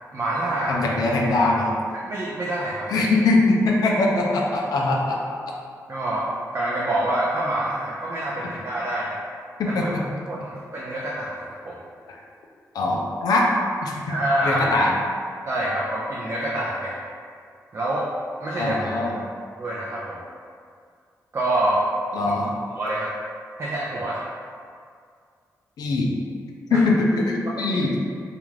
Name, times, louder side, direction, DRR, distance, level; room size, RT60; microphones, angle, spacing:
voice 1, 0.1-0.8 2.1-3.1 4.6-4.7 5.9-6.3 6.5-9.2 9.7-9.9 10.3-11.8 14.1-14.6 15.5-17.0 17.7-18.1 18.4-18.8 19.6-20.2 21.3-21.8 22.8-23.1 23.6-24.2 26.7-26.8, right 1 dB, 45° right, -6 dB, 0.4 m, -26 dB
voice 2, 0.7-1.8 2.9-5.2 9.6-10.0 12.1-12.2 12.7-13.5 13.8-14.1 14.4-14.9 18.6-19.2 22.1-22.5 25.8-26.1 26.7-28.0, left 2 dB, 90° left, -2 dB, 0.4 m, -22 dB
2.4 x 2.1 x 3.1 m, 2.2 s
cardioid pair, 85°, 7 cm